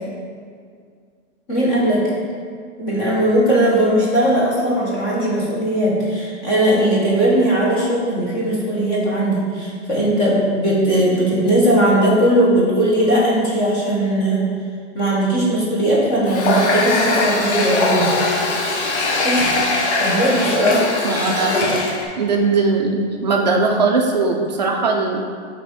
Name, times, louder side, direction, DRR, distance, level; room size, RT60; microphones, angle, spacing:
voice 1, 1.5-2.1 2.8-14.5 14.9-18.2 19.2-19.6 20.0-20.9, right 1 dB, 20° left, -6 dB, 0.7 m, -18 dB
Water tap faucet, 16.3-22.1, left 2 dB, 65° left, 0.9 m, -20 dB
voice 2, 21.0-21.8 22.2-25.2, right 3 dB, 35° right, 2 dB, 0.4 m, -19 dB
5.4 x 3.5 x 5.0 m, 2.1 s
supercardioid pair, 180°, 37 cm